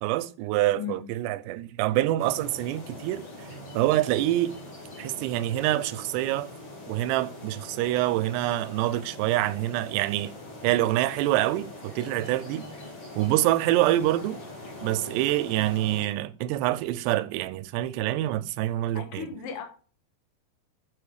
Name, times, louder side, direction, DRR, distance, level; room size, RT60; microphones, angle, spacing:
voice 1, 0.0-3.5 3.7-4.6 5.0-6.5 6.9-10.3 10.6-12.7 13.2-14.4 14.8-19.3, right 15 dB, 85° right, 2.7 m, -26 dB
sound 1, 2.2-16.0, left 2 dB, 40° left, 2.0 m, -43 dB
voice 2, 18.9-19.6, left 8 dB, 70° left, 1.3 m, -36 dB
7.0 x 5.1 x 4.8 m
omnidirectional pair, 4.8 m